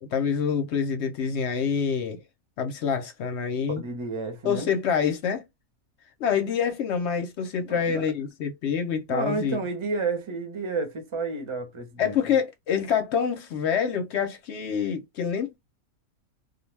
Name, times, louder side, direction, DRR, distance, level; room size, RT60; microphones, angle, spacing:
voice 1, 0.0-2.2 2.6-3.8 4.4-5.5 6.2-9.6 12.0-15.6, left 7 dB, 65° left, 0.8 m, -26 dB
voice 2, 3.8-4.7 7.6-8.1 9.1-12.2, right 3 dB, 30° right, 0.6 m, -31 dB
2.3 x 2.2 x 3.1 m
omnidirectional pair, 1.4 m